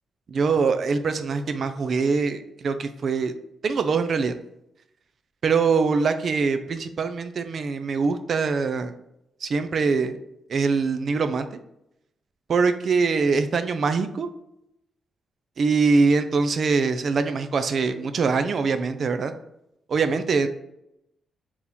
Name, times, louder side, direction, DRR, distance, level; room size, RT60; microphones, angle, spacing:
voice 1, 0.3-3.3 3.6-4.3 5.4-8.9 9.4-10.2 10.5-11.5 12.5-14.3 15.6-19.3 19.9-20.5, right 4 dB, 45° right, 9 dB, 0.4 m, -23 dB
4.4 x 2.9 x 3.5 m, 0.81 s
cardioid pair, 140°, 0 cm